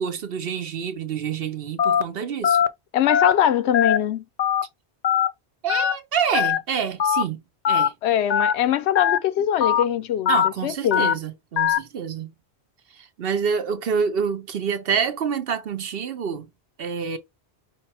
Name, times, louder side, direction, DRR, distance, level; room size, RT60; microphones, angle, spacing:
voice 1, 0.0-2.6 5.6-7.9 10.3-12.3 12.9-16.5 16.8-17.2, right 6 dB, 60° right, 0.9 m, -27 dB
Telephone, 1.8-2.0 2.4-2.7 3.1-3.3 3.7-4.0 4.4-4.6 5.0-5.3 5.7-5.9 6.3-6.6 7.0-7.2 7.6-7.9 8.3-8.5 8.9-9.2 9.6-9.8 10.3-10.5 10.9-11.1 11.6-11.8, left 9 dB, 55° left, 0.5 m, -20 dB
voice 2, 2.9-4.2 8.0-10.3 10.6-11.1, left 11 dB, 80° left, 0.9 m, -22 dB
5.5 x 2.2 x 4.2 m
omnidirectional pair, 1.1 m